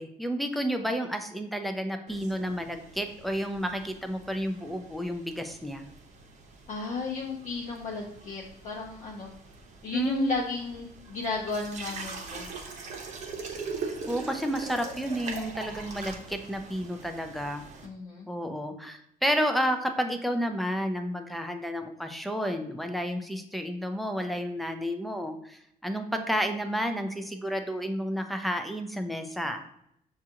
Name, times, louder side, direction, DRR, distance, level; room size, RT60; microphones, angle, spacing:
voice 1, 0.0-5.9 9.9-10.4 14.1-17.6 18.3-29.6, equal, ahead, 5 dB, 0.3 m, -31 dB
sound 1, 2.1-17.9, right 4 dB, 50° right, 0.7 m, -42 dB
voice 2, 6.7-9.3 9.8-12.5 17.8-18.3, left 4 dB, 55° left, -3 dB, 0.7 m, -34 dB
6.1 x 2.4 x 2.8 m, 0.73 s
cardioid pair, 160°, 15 cm